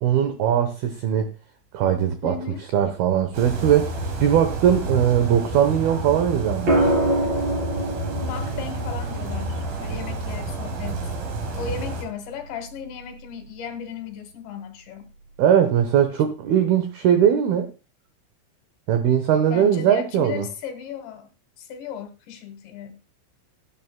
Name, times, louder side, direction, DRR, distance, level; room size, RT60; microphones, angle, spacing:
voice 1, 0.0-1.3 1.7-2.4 2.7-3.9 4.2-6.9 15.4-17.7 18.9-20.5, right 9 dB, 80° right, 2.2 m, -20 dB
voice 2, 2.2-2.7 8.2-11.1 11.5-15.1 19.5-21.3 21.6-23.0, left 7 dB, 70° left, 3.0 m, -36 dB
sound 1, 3.3-12.0, right 2 dB, 50° right, 3.9 m, -30 dB
sound 2, 6.7-10.8 12.5-12.9, right 1 dB, 30° right, 3.1 m, -26 dB
17.0 x 10.0 x 2.2 m
omnidirectional pair, 5.9 m